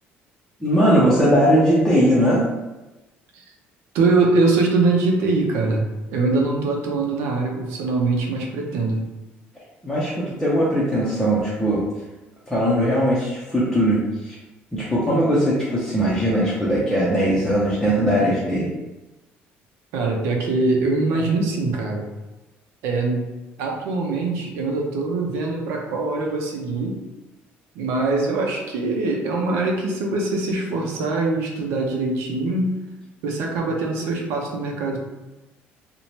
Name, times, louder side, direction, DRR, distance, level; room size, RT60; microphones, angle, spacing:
voice 1, 0.6-2.4 9.8-11.8 12.5-14.4 14.7-18.7, equal, 5° left, -9 dB, 0.5 m, -19 dB
voice 2, 3.9-9.0 19.9-22.1 22.8-23.3 23.6-27.0 27.8-32.7 33.2-35.0, right 3 dB, 85° right, 0 dB, 0.6 m, -23 dB
2.7 x 2.1 x 3.0 m, 1.1 s
cardioid pair, 145°, 4 cm